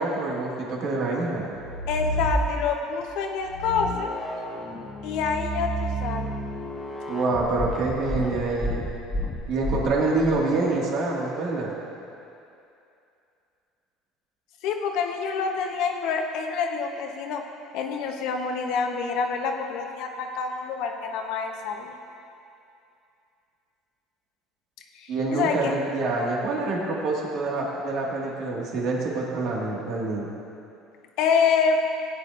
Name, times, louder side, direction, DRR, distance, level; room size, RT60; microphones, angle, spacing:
voice 1, 0.0-1.5 7.1-8.8 9.5-11.7 25.1-30.3, right 3 dB, 60° right, -3 dB, 2.0 m, -26 dB
sound 1, 1.5-2.9 3.4-10.3, equal, 25° left, 1.0 m, -31 dB
voice 2, 1.9-4.1 5.0-6.3 14.6-17.4 17.7-22.0 24.9-25.7 31.2-31.8, left 5 dB, 70° left, 3 dB, 1.0 m, -27 dB
16.0 x 9.3 x 2.6 m, 2.6 s
supercardioid pair, 115°, 0 cm